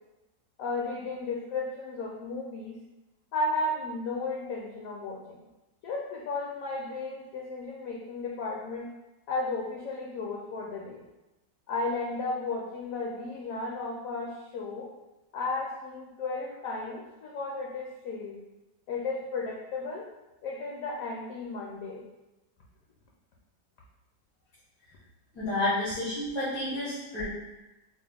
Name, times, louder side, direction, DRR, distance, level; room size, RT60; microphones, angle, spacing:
voice 1, 0.6-2.8 3.3-5.4 5.8-8.9 9.3-11.0 11.7-14.9 15.3-18.4 18.9-20.1 20.4-22.0, left 3 dB, 70° left, -2 dB, 0.8 m, -34 dB
voice 2, 25.3-27.3, left 1 dB, 90° left, -10 dB, 1.9 m, -30 dB
4.6 x 2.0 x 3.4 m, 1.0 s
omnidirectional pair, 1.9 m